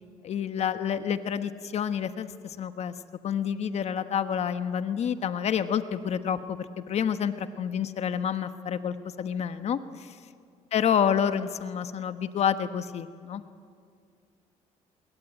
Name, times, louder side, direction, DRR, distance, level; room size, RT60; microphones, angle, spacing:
voice 1, 0.2-2.9 3.2-9.8 10.7-13.4, left 8 dB, 55° left, 10 dB, 1.2 m, -28 dB
25.0 x 22.0 x 9.2 m, 2.3 s
cardioid pair, 100°, 14 cm